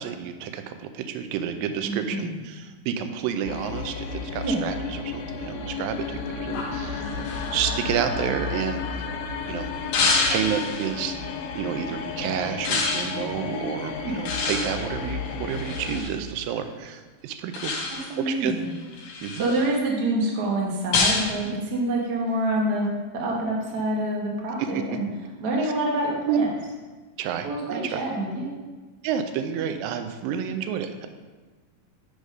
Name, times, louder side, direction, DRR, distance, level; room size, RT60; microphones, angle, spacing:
voice 1, 0.0-8.8 9.5-9.7 10.3-11.2 11.5-17.7 18.3-18.5 19.2-19.5 24.6-25.0 25.6-25.7 26.3-26.4 27.2-28.0 29.0-31.1, right 8 dB, 85° right, 8 dB, 2.3 m, -30 dB
voice 2, 1.8-2.4 4.4-4.7 14.0-14.2 18.1-18.7 19.3-22.9 23.1-25.1 25.4-26.5 27.4-28.5, right 1 dB, 65° right, -2 dB, 0.9 m, -26 dB
sound 1, 3.5-16.0, left 5 dB, 90° left, 2.4 m, -33 dB
sound 2, 6.5-9.2 9.9-10.9 12.6-13.2 14.3-16.1 17.5-18.2 18.7-19.7 20.9-21.3, left 3 dB, 70° left, 1.6 m, -27 dB
6.4 x 4.9 x 5.4 m, 1.3 s
omnidirectional pair, 4.0 m